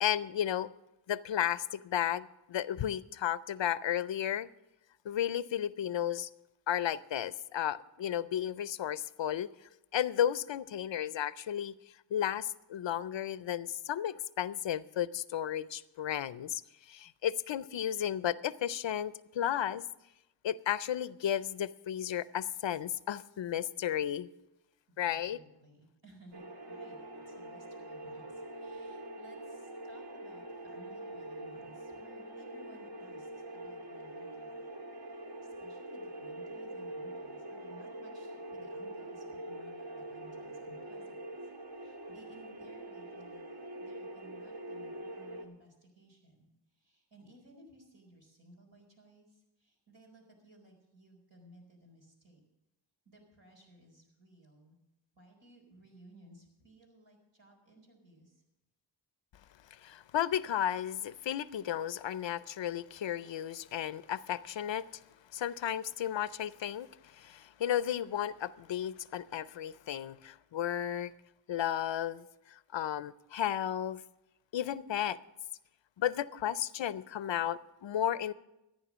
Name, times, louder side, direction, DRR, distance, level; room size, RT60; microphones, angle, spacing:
voice 1, 0.0-0.7 1.1-4.5 5.1-6.3 6.7-9.5 9.9-11.7 12.1-16.6 16.9-19.8 20.4-24.3 25.0-25.4 59.8-64.9 65.3-71.1 71.5-74.0 74.5-75.2 76.0-78.3, left 10 dB, 85° left, 0.5 m, -33 dB
voice 2, 24.9-27.0 27.3-34.6 35.0-41.2 41.7-43.4 43.8-46.4 46.7-52.4 53.0-54.8 55.1-58.4, right 1 dB, 80° right, 4.4 m, -59 dB
sound 1, 26.3-45.5, right 1 dB, 60° right, 2.0 m, -44 dB
14.0 x 9.3 x 6.1 m
cardioid pair, 45°, 43 cm